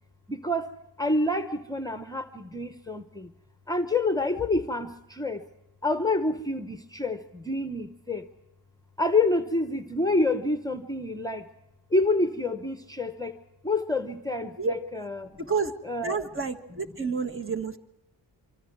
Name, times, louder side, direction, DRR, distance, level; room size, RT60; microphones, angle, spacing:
voice 1, 0.3-0.7 1.0-3.3 3.7-5.4 5.8-8.3 9.0-11.5 11.9-13.4 13.6-15.3 15.8-16.2, left 2 dB, 10° left, 8 dB, 1.0 m, -27 dB
voice 2, 15.4-15.7 16.0-17.8, right 5 dB, 30° right, 7 dB, 1.5 m, -29 dB
25.0 x 25.0 x 4.7 m, 0.88 s
wide cardioid pair, 120°, 43 cm